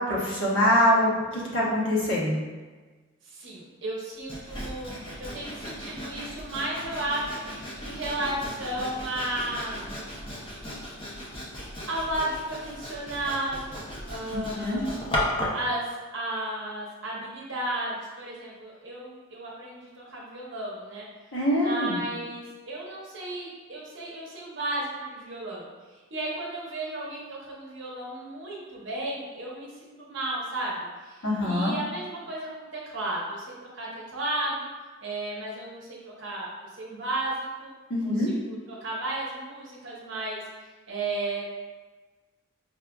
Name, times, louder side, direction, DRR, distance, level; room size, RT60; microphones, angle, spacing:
voice 1, 0.0-2.4 14.3-14.8 21.3-22.0 31.2-31.7 37.9-38.3, equal, 60° left, -6 dB, 1.0 m, -24 dB
voice 2, 3.2-4.9 5.2-10.0 11.9-15.2 15.5-21.1 21.5-34.7 35.0-37.7 38.0-40.4 40.9-41.5, right 1 dB, 60° right, -4 dB, 0.8 m, -34 dB
Sawing, 4.3-15.7, left 1 dB, 25° left, 0.6 m, -36 dB
5.4 x 2.4 x 2.3 m, 1.3 s
head